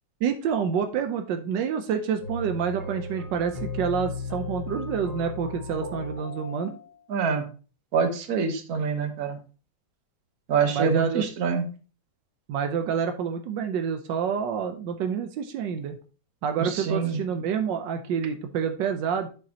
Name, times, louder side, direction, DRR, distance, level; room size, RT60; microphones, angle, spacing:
voice 1, 0.2-6.8 10.7-11.2 12.5-16.0 16.4-19.3, right 7 dB, 85° right, 7 dB, 1.4 m, -28 dB
sound 1, 2.2-6.9, left 3 dB, 20° left, 1.9 m, -36 dB
voice 2, 7.1-7.4 7.9-9.4 10.5-11.6 16.6-17.2, right 5 dB, 60° right, 7 dB, 1.5 m, -25 dB
7.4 x 6.6 x 2.8 m, 0.36 s
omnidirectional pair, 1.9 m